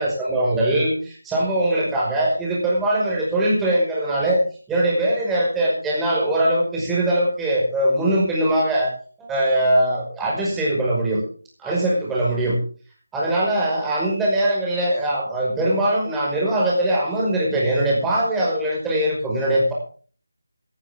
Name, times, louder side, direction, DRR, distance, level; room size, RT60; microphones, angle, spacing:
voice 1, 0.0-4.4 4.7-8.9 9.2-11.2 11.6-12.6 13.1-19.7, right 1 dB, 5° right, -4 dB, 5.5 m, -21 dB
17.5 x 15.0 x 3.6 m, 0.42 s
figure-of-eight pair, 160°, 0 cm